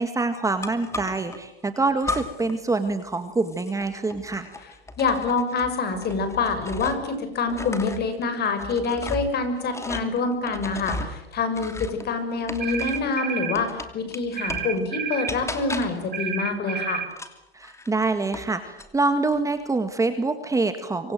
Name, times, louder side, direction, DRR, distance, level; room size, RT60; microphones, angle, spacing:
voice 1, 0.0-4.5 17.5-21.1, right 3 dB, 10° right, 8 dB, 1.9 m, -25 dB
sound 1, 0.6-1.4 2.0-2.6 2.9-7.2 7.5-13.1 13.5-14.8 15.3-16.1 17.1-18.5 18.8-19.4, left 2 dB, 10° left, 2.8 m, -36 dB
voice 2, 5.0-17.0, left 4 dB, 35° left, 8 dB, 6.8 m, -26 dB
sound 2, 12.6-13.6 14.4-15.4 16.1-17.1, right 8 dB, 35° right, 2.8 m, -30 dB
26.5 x 25.0 x 7.8 m, 0.93 s
hypercardioid pair, 115°, 29 cm